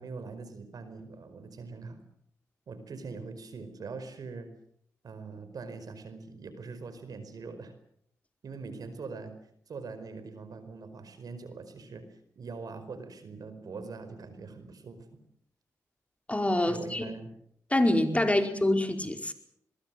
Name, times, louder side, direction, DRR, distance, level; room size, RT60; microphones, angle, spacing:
voice 1, 0.0-2.0 2.7-4.5 5.0-7.7 8.4-9.3 9.7-12.1 12.3-15.2 16.7-17.3 18.3-18.4, right 4 dB, 70° right, 10 dB, 4.9 m, -42 dB
voice 2, 16.3-17.0 17.7-19.3, left 1 dB, 20° left, 6 dB, 4.7 m, -26 dB
24.0 x 22.0 x 7.7 m, 0.68 s
cardioid pair, 50°, 7 cm